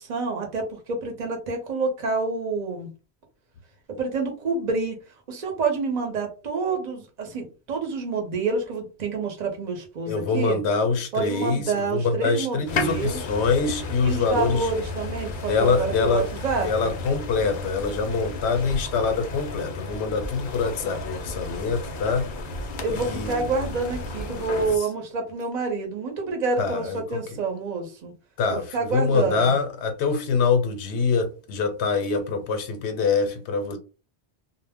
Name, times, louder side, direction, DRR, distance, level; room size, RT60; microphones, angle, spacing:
voice 1, 0.0-2.9 4.0-5.0 5.3-10.6 11.1-13.2 14.0-16.9 22.8-28.1 28.5-29.5, right 4 dB, 45° right, 0.8 m, -28 dB
voice 2, 10.0-14.6 15.5-16.3 16.6-22.3 22.9-23.5 26.6-27.4 28.4-33.8, left 4 dB, 85° left, 0.9 m, -25 dB
sound 1, 12.7-24.8, left 3 dB, 60° left, 0.6 m, -33 dB
2.1 x 2.0 x 3.4 m
omnidirectional pair, 1.1 m